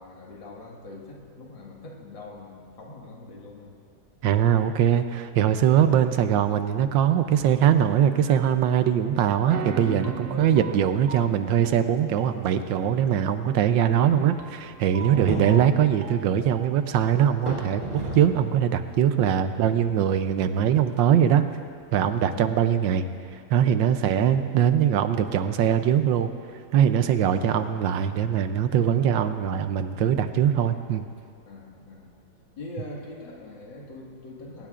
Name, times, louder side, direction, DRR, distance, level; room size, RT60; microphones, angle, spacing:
voice 1, 0.0-3.8 10.2-10.6 15.0-15.3 22.0-22.4 23.7-24.0 26.9-27.2 31.5-32.1 32.6-34.7, left 2 dB, 80° left, -1 dB, 2.6 m, -43 dB
voice 2, 4.2-21.4 21.9-23.0 23.5-26.3 26.7-31.0, right 9 dB, 80° right, 9 dB, 1.4 m, -22 dB
sound 1, 8.3-9.0 9.5-17.0, right 4 dB, 60° right, 1.5 m, -39 dB
sound 2, 10.2-10.7 11.1-11.2 11.8-11.9 12.4-18.5 18.8-23.1, equal, 25° right, 3.8 m, -37 dB
22.5 x 18.5 x 2.5 m, 2.3 s
omnidirectional pair, 2.0 m